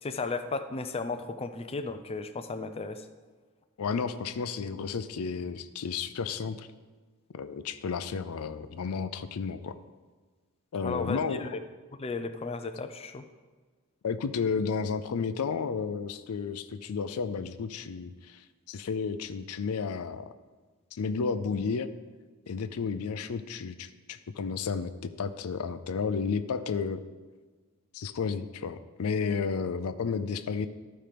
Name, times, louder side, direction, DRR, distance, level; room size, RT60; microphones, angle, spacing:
voice 1, 0.0-3.1 10.8-11.5 12.0-13.2, left 4 dB, 25° left, 8 dB, 0.4 m, -34 dB
voice 2, 3.8-6.7 7.3-9.8 10.7-11.6 14.0-20.3 20.9-21.9 22.5-27.0 27.9-30.7, left 5 dB, 80° left, 11 dB, 0.5 m, -32 dB
12.5 x 4.4 x 5.0 m, 1.4 s
head